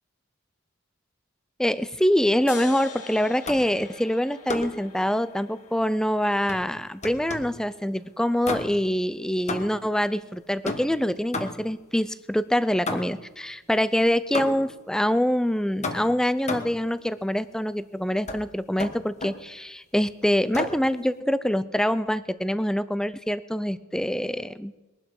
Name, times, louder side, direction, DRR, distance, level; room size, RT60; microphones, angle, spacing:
voice 1, 1.6-24.7, equal, 5° left, 15 dB, 0.5 m, -25 dB
sound 1, 2.5-9.4, left 4 dB, 90° left, 2.4 m, -44 dB
sound 2, 3.4-3.8 4.5-4.9 6.5-7.6 8.4-9.0 9.5-9.9 10.6-11.8 12.9-13.3 14.3-14.8 15.8-16.8 18.3-18.4 18.8-19.4 20.5-20.9, left 2 dB, 30° left, 1.4 m, -33 dB
21.5 x 12.0 x 5.4 m, 1.1 s
head